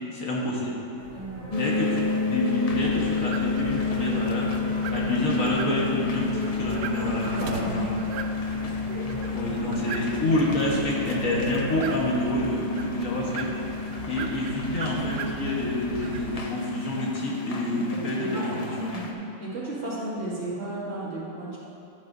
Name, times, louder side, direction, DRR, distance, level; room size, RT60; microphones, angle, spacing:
voice 1, 0.1-0.8 1.5-4.5 4.9-7.9 9.3-13.5 14.1-18.9, left 1 dB, 60° left, -4 dB, 1.8 m, -28 dB
sound 1, 1.0-12.0, right 1 dB, 90° right, 2.0 m, -41 dB
voice 2, 1.1-1.6 7.0-7.9 17.9-18.6 18.9-21.6, right 2 dB, 45° right, -8 dB, 2.4 m, -35 dB
sound 2, 1.5-19.1, left 5 dB, 40° left, 0.5 m, -31 dB
sound 3, 2.7-16.5, right 7 dB, 70° right, 0.8 m, -38 dB
11.5 x 10.5 x 2.7 m, 2.7 s
omnidirectional pair, 1.6 m